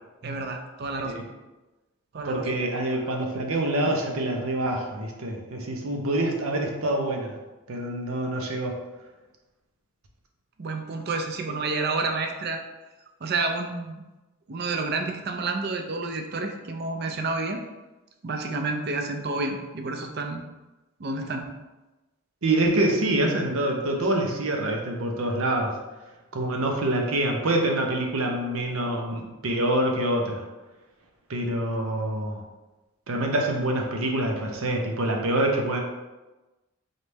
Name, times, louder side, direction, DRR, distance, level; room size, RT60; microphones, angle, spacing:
voice 1, 0.2-1.2 2.1-2.5 10.6-12.6 13.2-13.9 14.5-17.6 18.2-20.4 21.0-21.5, right 3 dB, 50° right, 4 dB, 0.5 m, -29 dB
voice 2, 2.2-7.3 7.7-8.7 11.5-11.6 22.4-25.7 26.3-30.4 31.3-32.4 33.1-35.8, right 1 dB, 85° right, 2 dB, 0.8 m, -26 dB
4.1 x 3.2 x 3.4 m, 1.1 s
head